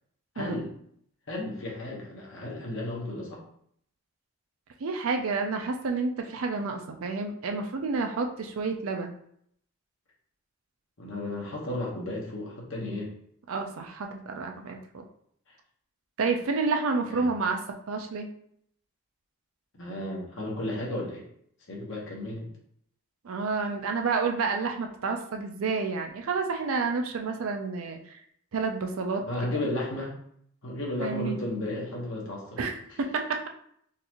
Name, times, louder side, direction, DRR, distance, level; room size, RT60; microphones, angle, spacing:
voice 1, 0.3-0.7 1.3-3.4 11.0-13.1 15.5-15.6 17.1-17.3 19.7-21.2 21.7-22.5 29.3-30.2 30.6-32.6 32.9-33.0, left 1 dB, 60° left, -2 dB, 1.0 m, -34 dB
voice 2, 4.8-9.1 13.5-15.0 16.2-17.6 17.9-18.3 23.2-28.2 28.5-29.2 31.0-31.4 32.6-32.7 33.0-33.5, right 4 dB, 75° right, 4 dB, 0.5 m, -29 dB
3.9 x 2.5 x 2.9 m, 0.67 s
head